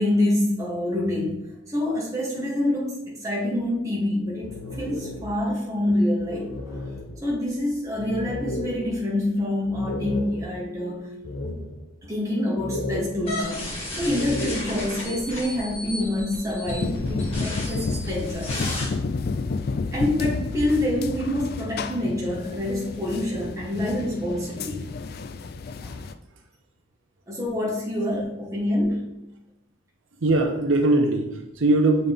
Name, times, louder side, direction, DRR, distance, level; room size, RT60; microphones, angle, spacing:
voice 1, 0.0-6.9 7.2-11.1 12.0-13.7 14.0-18.6 19.9-24.9 25.8-26.0 27.3-29.2, left 1 dB, 15° right, -5 dB, 1.5 m, -26 dB
sound 1, 4.2-5.5 5.9-6.0 6.2-10.7 11.2-12.0 12.6-14.9, left 2 dB, 90° left, 0.8 m, -34 dB
sound 2, 13.2-18.9, left 1 dB, 30° left, 2.1 m, -34 dB
sound 3, 16.7-26.1, left 4 dB, 50° left, 0.3 m, -31 dB
voice 2, 30.2-32.1, right 2 dB, 80° right, 3 dB, 0.7 m, -21 dB
6.9 x 4.0 x 3.5 m, 0.87 s
head